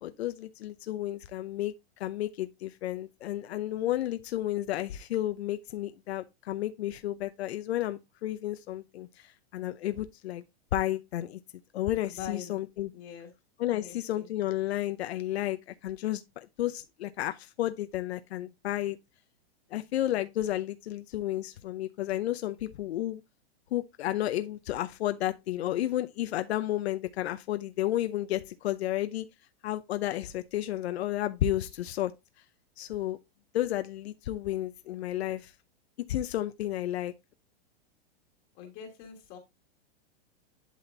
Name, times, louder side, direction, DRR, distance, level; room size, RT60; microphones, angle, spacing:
voice 1, 0.0-1.7 2.0-10.4 10.7-11.4 11.7-12.9 13.6-19.0 19.7-23.2 23.7-29.3 29.6-32.1 32.8-33.2 33.5-35.5 36.1-37.1, left 13 dB, 75° left, 0.7 m, -32 dB
voice 2, 12.1-12.5 12.9-13.3 13.7-14.3 38.5-39.4, left 8 dB, 25° left, 1.5 m, -43 dB
11.0 x 4.3 x 2.6 m
supercardioid pair, 175°, 32 cm